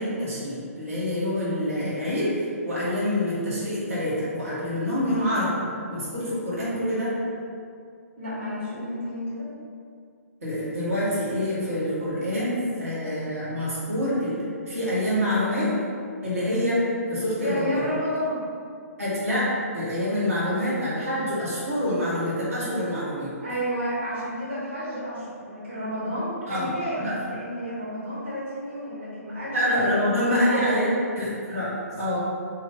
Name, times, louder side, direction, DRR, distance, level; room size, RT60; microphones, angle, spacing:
voice 1, 0.0-2.3 2.6-5.6 5.9-7.2 10.4-14.4 14.7-15.7 16.2-16.8 17.1-17.7 19.0-19.5 19.7-23.3 26.5-26.7 27.0-27.1 29.5-30.9 31.2-32.2, left 1 dB, 65° right, -10 dB, 1.5 m, -26 dB
voice 2, 8.2-9.5 17.3-18.4 23.4-29.6 29.9-30.9, equal, 45° right, -12 dB, 1.4 m, -30 dB
2.8 x 2.8 x 4.0 m, 2.3 s
figure-of-eight pair, 130°, 8 cm